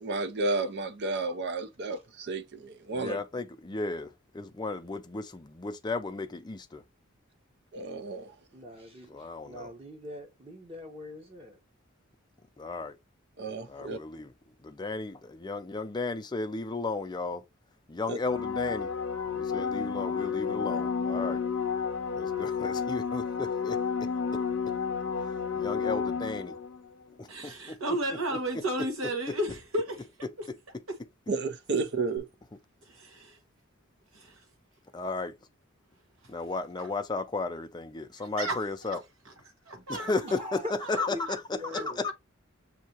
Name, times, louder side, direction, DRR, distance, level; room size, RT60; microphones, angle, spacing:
voice 1, 0.0-3.2 7.7-8.4 13.4-14.0 18.1-18.2 31.3-32.3, right 3 dB, 55° right, 0.6 m, -32 dB
voice 2, 2.9-6.8 9.1-9.7 12.6-13.0 13.7-14.3 14.6-17.4 17.9-18.9 19.3-21.4 22.2-23.8 25.6-26.6 27.2-27.8 28.3-28.4 34.9-35.3 36.3-39.0 39.9-40.6 40.9-41.6 41.9-42.1, left 3 dB, 20° left, 0.5 m, -34 dB
voice 3, 8.5-9.1 9.4-11.6 40.2-41.2 41.5-42.1, left 1 dB, 25° right, 1.1 m, -42 dB
sound 1, 18.2-26.8 32.2-32.3, left 6 dB, 65° left, 0.7 m, -31 dB
voice 4, 27.3-30.1 30.9-31.0 32.9-33.4 34.1-34.3 36.8-36.9 38.2-38.6 38.9-39.0 39.7-40.1 40.9-41.0 41.3-41.4 41.7-42.1, right 1 dB, 85° right, 1.3 m, -33 dB
6.5 x 2.8 x 2.9 m
head